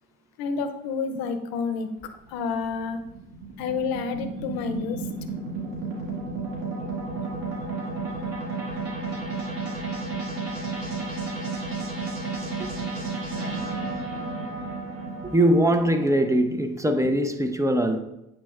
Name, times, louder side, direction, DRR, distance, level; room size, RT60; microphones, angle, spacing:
voice 1, 0.4-3.0 3.6-5.1 9.3-9.4, left 5 dB, 90° left, 0.7 m, -29 dB
sound 1, 2.0-16.2, right 3 dB, 70° right, 2.3 m, -32 dB
voice 2, 15.2-18.0, right 1 dB, 10° right, 0.8 m, -22 dB
8.5 x 4.6 x 2.4 m
supercardioid pair, 60°, 35 cm